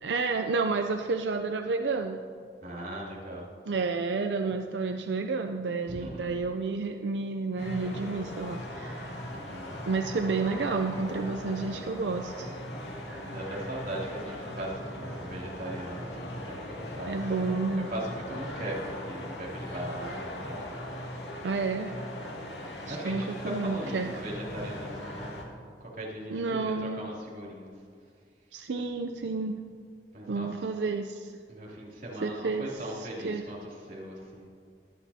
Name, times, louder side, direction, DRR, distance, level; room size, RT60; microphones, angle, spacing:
voice 1, 0.0-2.3 3.6-9.2 9.9-12.6 17.1-17.9 21.4-21.9 22.9-24.1 26.3-27.1 28.5-29.6 30.3-31.3 32.2-33.4, right 4 dB, 85° right, 5 dB, 0.5 m, -30 dB
voice 2, 2.6-3.5 5.9-6.4 9.3-9.8 13.1-17.1 17.7-20.7 22.3-25.4 25.8-27.7 30.1-30.5 31.5-34.5, right 1 dB, 50° right, -5 dB, 2.9 m, -39 dB
sound 1, 7.6-25.4, left 1 dB, 85° left, 2.3 m, -39 dB
22.5 x 8.2 x 2.8 m, 2.3 s
head